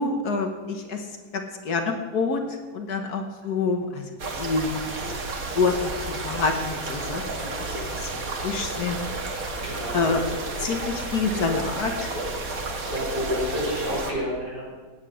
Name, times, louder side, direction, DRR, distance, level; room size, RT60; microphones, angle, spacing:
voice 1, 0.0-4.1 4.4-4.7 5.5-8.1 8.4-9.1 9.9-10.2 10.6-12.1, left 4 dB, 70° left, 5 dB, 1.8 m, -27 dB
sound 1, 4.2-14.1, right 2 dB, 55° right, 2.0 m, -31 dB
voice 2, 9.6-10.2 12.8-14.6, equal, 30° right, -5 dB, 6.5 m, -30 dB
16.5 x 9.9 x 6.4 m, 1.4 s
omnidirectional pair, 1.8 m